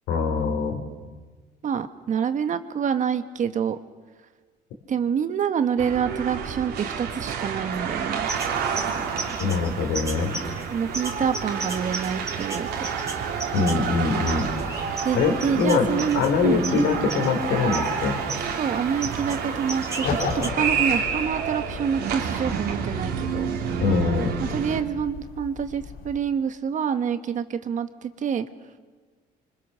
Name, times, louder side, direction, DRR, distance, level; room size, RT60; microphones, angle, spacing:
voice 1, 0.1-0.8 9.4-10.3 13.5-14.5 15.1-15.9 16.1-18.2 23.8-24.3, left 4 dB, 85° left, 3 dB, 4.9 m, -23 dB
voice 2, 1.6-3.8 4.9-8.3 10.7-12.9 15.0-16.6 18.6-23.5 24.4-28.4, right 7 dB, 45° right, 9 dB, 1.4 m, -27 dB
sound 1, 5.8-24.8, right 6 dB, 75° right, 3.1 m, -29 dB
sound 2, 8.3-20.5, right 3 dB, 15° right, 3.6 m, -37 dB
sound 3, 20.0-26.2, left 6 dB, 65° left, 2.8 m, -35 dB
26.5 x 25.0 x 6.6 m, 1.4 s
cardioid pair, 110°, 17 cm